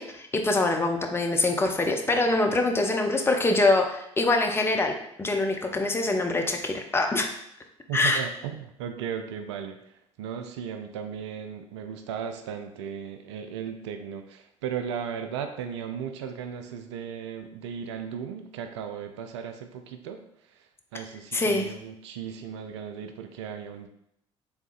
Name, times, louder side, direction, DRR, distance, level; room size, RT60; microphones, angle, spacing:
voice 1, 0.0-4.9 5.2-7.3 7.9-8.2 21.3-21.7, left 2 dB, 15° left, 3 dB, 0.5 m, -24 dB
voice 2, 7.9-9.8 10.2-20.2 20.9-23.9, right 7 dB, 65° right, 6 dB, 0.4 m, -36 dB
4.5 x 3.5 x 2.4 m, 0.75 s
figure-of-eight pair, 60°, 16 cm